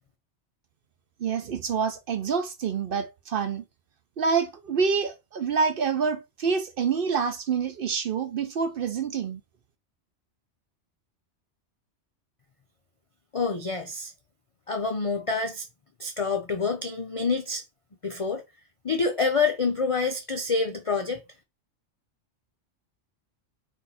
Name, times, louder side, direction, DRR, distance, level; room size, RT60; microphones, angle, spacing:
voice 1, 1.2-3.6 4.2-9.4, right 6 dB, 55° right, 0.7 m, -27 dB
voice 2, 13.3-14.1 14.7-15.7 16.0-17.6 18.0-18.4 18.8-21.2, left 4 dB, 55° left, 0.3 m, -27 dB
4.2 x 2.6 x 4.1 m
omnidirectional pair, 1.3 m